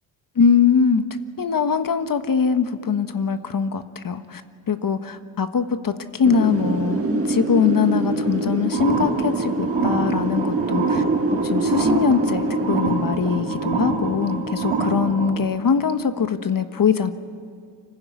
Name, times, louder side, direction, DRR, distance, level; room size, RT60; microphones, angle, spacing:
voice 1, 0.3-1.0 1.4-4.4 4.7-11.0 11.4-17.1, left 6 dB, 45° left, 9 dB, 1.4 m, -22 dB
sound 1, 6.2-6.3 7.2-7.3 8.2-8.3 9.3-9.4 10.2-10.3 10.9-11.0 11.4-11.5 11.9-15.1, left 12 dB, 80° left, 4.4 m, -43 dB
Wind, 6.2-15.0, right 2 dB, 30° right, 1.8 m, -25 dB
sound 2, 8.7-15.3, right 4 dB, 90° right, 3.9 m, -26 dB
25.0 x 15.5 x 9.6 m, 2.1 s
cardioid pair, 70°, 48 cm